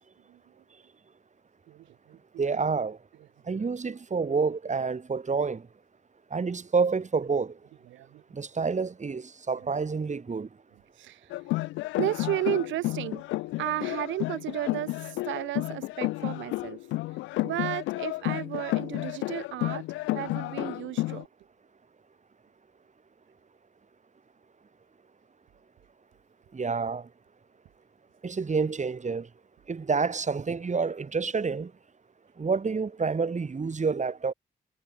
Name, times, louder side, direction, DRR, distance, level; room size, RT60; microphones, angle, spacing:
voice 1, 1.7-2.2 3.5-3.7 7.9-8.2 11.0-11.3 12.0-13.2 13.6-16.8 17.4-19.8 20.1-21.3, right 15 dB, 80° right, 2.3 m, -33 dB
voice 2, 2.4-3.0 3.5-5.6 6.3-7.5 8.3-10.5 26.5-27.1 28.2-29.3 29.7-31.7 32.4-34.3, right 5 dB, 40° right, 2.5 m, -28 dB
sound 1, 11.3-21.2, left 19 dB, 80° left, 0.8 m, -31 dB
hypercardioid pair, 45°, 19 cm